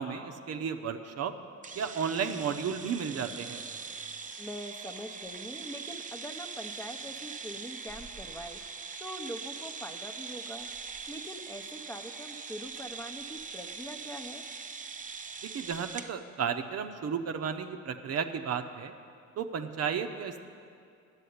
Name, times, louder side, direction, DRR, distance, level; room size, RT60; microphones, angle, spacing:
voice 1, 0.0-1.3 1.7-3.6 15.5-18.9 19.4-20.4, right 7 dB, 55° right, 6 dB, 0.7 m, -33 dB
sound 1, 1.6-16.1, right 5 dB, 25° right, 0.7 m, -42 dB
voice 2, 4.4-8.6 9.0-10.7 11.1-14.4, equal, 10° left, 5 dB, 0.8 m, -43 dB
9.9 x 7.5 x 9.4 m, 2.4 s
cardioid pair, 90°, 30 cm